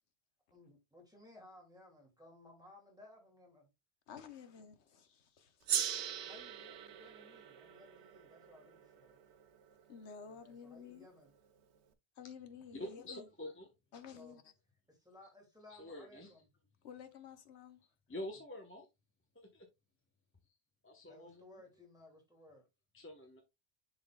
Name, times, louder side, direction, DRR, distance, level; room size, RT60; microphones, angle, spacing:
voice 1, 0.5-3.7 6.3-9.2 10.2-11.4 14.2-14.4 15.1-16.5 18.3-18.4 21.1-22.7, left 2 dB, 5° right, 2.2 m, -59 dB
voice 2, 4.1-5.8 9.9-11.1 12.2-13.3 13.9-14.4 16.8-17.8, left 7 dB, 85° left, 1.2 m, -52 dB
Gong, 5.7-10.4, right 9 dB, 90° right, 1.0 m, -41 dB
voice 3, 12.7-13.7 15.7-16.3 18.1-18.9 19.5-19.7 20.8-21.4 22.9-23.4, left 1 dB, 10° left, 0.9 m, -46 dB
10.5 x 4.1 x 2.2 m
omnidirectional pair, 1.1 m